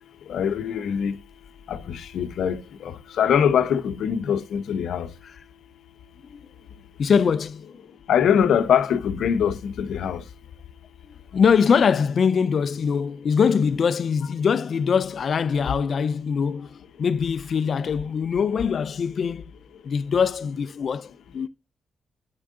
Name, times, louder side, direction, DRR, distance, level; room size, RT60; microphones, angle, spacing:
voice 1, 0.3-1.1 1.7-5.1 8.1-10.2, left 8 dB, 85° left, 0.9 m, -23 dB
voice 2, 7.0-7.7 11.0-19.5 19.8-21.5, left 6 dB, 60° left, 0.6 m, -23 dB
9.8 x 4.5 x 3.8 m
cardioid pair, 75°, 0 cm